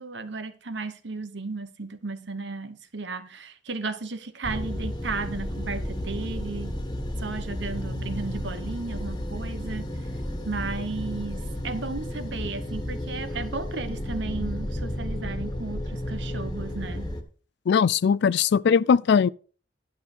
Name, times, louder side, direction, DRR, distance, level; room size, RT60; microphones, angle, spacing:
voice 1, 0.0-6.7 7.2-9.9 10.4-11.4 11.6-17.1, right 3 dB, 70° right, 1.1 m, -34 dB
sound 1, 4.4-17.2, left 1 dB, 25° left, 1.6 m, -32 dB
voice 2, 17.7-19.3, left 6 dB, 65° left, 0.4 m, -20 dB
11.5 x 6.4 x 5.1 m
head